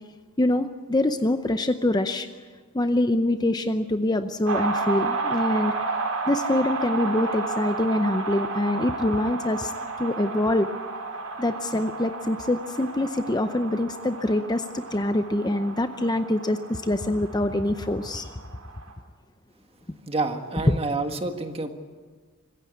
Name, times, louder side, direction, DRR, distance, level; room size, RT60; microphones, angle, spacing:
voice 1, 0.4-2.3 2.7-5.7 6.3-9.7 10.0-10.7 11.4-18.3 20.7-20.8, left 1 dB, 20° left, 9 dB, 0.6 m, -24 dB
sound 1, 4.4-18.9, right 4 dB, 75° right, 4.0 m, -32 dB
voice 2, 20.1-21.7, right 3 dB, 25° right, 6 dB, 1.6 m, -28 dB
25.5 x 15.0 x 8.3 m, 1.5 s
head